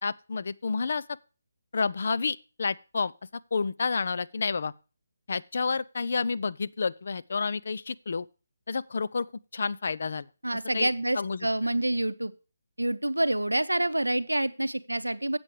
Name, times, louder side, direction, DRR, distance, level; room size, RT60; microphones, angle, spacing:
voice 1, 0.0-1.0 1.7-3.1 3.5-4.7 5.3-8.3 8.7-9.3 9.5-10.3 10.7-10.9 11.2-11.5, left 4 dB, 55° left, 0.5 m, -29 dB
voice 2, 10.4-12.3 12.8-15.4, right 1 dB, 90° right, 0.7 m, -27 dB
8.4 x 7.7 x 4.8 m
figure-of-eight pair, 145°, 0 cm